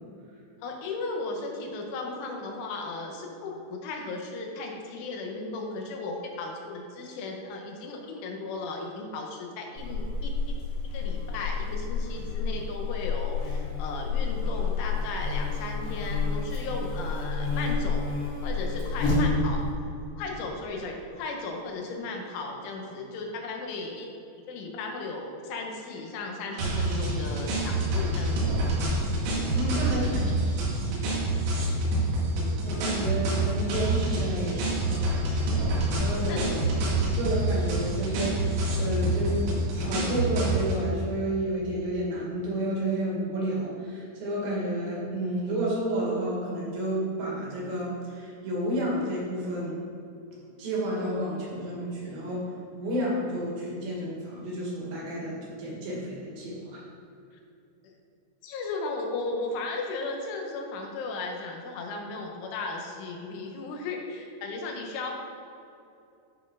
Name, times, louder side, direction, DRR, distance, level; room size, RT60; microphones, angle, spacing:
voice 1, 0.6-10.6 10.9-18.1 18.4-19.6 20.1-24.1 24.5-28.6 29.7-30.2 36.0-36.4 57.8-57.9 58.4-65.1, left 3 dB, 80° left, 1 dB, 3.4 m, -36 dB
Buzz, 9.8-19.7, left 4 dB, 50° left, 3.3 m, -29 dB
sound 1, 26.6-40.8, right 1 dB, 85° right, 4.6 m, -27 dB
voice 2, 29.4-30.3 32.6-35.1 35.9-49.8 50.6-56.8, right 1 dB, 55° right, -5 dB, 3.3 m, -31 dB
11.5 x 4.3 x 5.5 m, 2.6 s
omnidirectional pair, 5.7 m